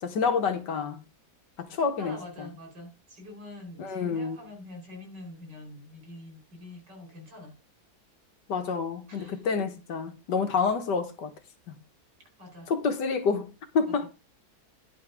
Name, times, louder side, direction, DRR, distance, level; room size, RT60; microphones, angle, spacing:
voice 1, 0.0-1.0 1.6-2.5 3.8-4.4 8.5-11.3 12.7-14.1, left 5 dB, 75° left, 1.8 m, -28 dB
voice 2, 2.0-7.5 9.1-9.4 12.4-12.7 14.0-14.1, left 2 dB, 80° right, 5.2 m, -45 dB
10.0 x 5.2 x 5.1 m
omnidirectional pair, 1.9 m